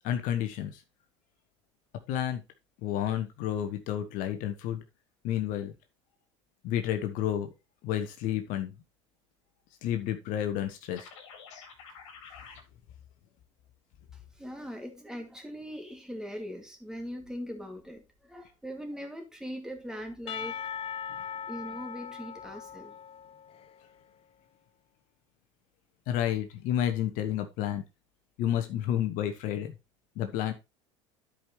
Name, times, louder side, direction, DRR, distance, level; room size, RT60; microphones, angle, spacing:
voice 1, 0.0-0.8 2.1-2.4 2.8-4.8 5.2-5.7 6.6-7.5 7.8-8.7 9.8-11.1 21.1-21.3 26.1-27.8 28.4-29.7 30.2-30.5, left 10 dB, 55° left, 1.1 m, -30 dB
sound 1, 10.9-12.6, left 6 dB, 75° left, 2.3 m, -48 dB
voice 2, 14.4-20.6 21.5-22.9, equal, 5° right, 2.4 m, -40 dB
Percussion / Church bell, 20.3-23.9, left 7 dB, 35° left, 0.8 m, -39 dB
12.0 x 5.1 x 3.1 m
hypercardioid pair, 80°, 16 cm